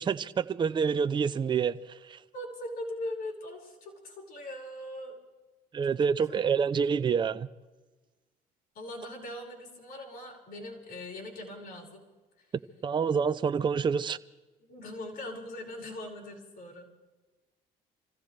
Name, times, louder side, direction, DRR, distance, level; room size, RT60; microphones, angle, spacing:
voice 1, 0.0-2.2 5.7-7.5 12.8-14.2, right 6 dB, 25° right, 0.5 m, -27 dB
voice 2, 2.3-5.2 5.8-5.9 6.2-6.8 8.7-12.0 14.7-16.8, left 1 dB, 65° left, 5.3 m, -41 dB
26.5 x 16.0 x 3.3 m
cardioid pair, 110°, 17 cm